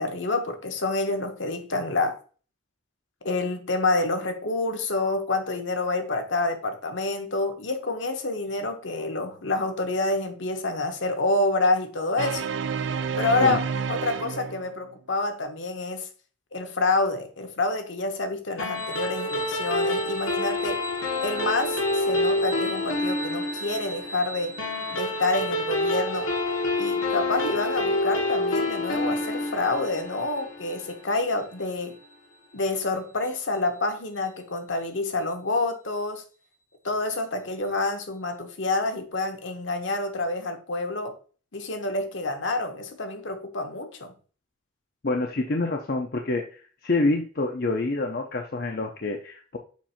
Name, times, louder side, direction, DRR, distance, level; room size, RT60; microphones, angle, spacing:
voice 1, 0.0-2.2 3.2-12.5 13.2-16.1 16.5-20.8 21.2-24.6 24.9-26.3 26.8-32.0 32.5-36.2 36.8-41.1 41.5-44.1, left 2 dB, 65° left, 1.1 m, -28 dB
sound 1, 12.2-14.9, right 6 dB, 60° right, 0.4 m, -29 dB
sound 2, 18.6-31.3, left 2 dB, 85° left, 1.6 m, -28 dB
sound 3, 18.7-34.3, right 3 dB, 10° right, 0.8 m, -42 dB
voice 2, 45.0-49.6, left 2 dB, 50° left, 0.7 m, -27 dB
7.3 x 2.6 x 5.7 m
head